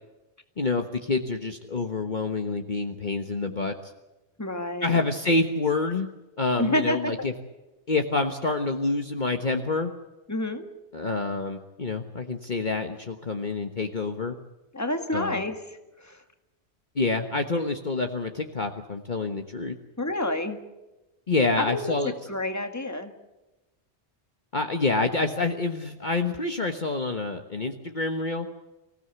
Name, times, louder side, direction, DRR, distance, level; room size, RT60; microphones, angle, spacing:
voice 1, 0.6-3.9 4.8-6.1 6.4-7.3 7.9-9.9 10.9-14.4 15.1-15.4 16.9-19.7 21.3-22.1 24.5-28.5, left 3 dB, 40° left, 5 dB, 1.4 m, -27 dB
voice 2, 4.4-5.0 6.6-7.3 10.3-10.6 14.7-15.6 16.0-16.2 20.0-20.6 21.6-23.1, left 1 dB, 15° left, 6 dB, 2.0 m, -29 dB
25.0 x 16.5 x 8.1 m, 1.1 s
omnidirectional pair, 1.2 m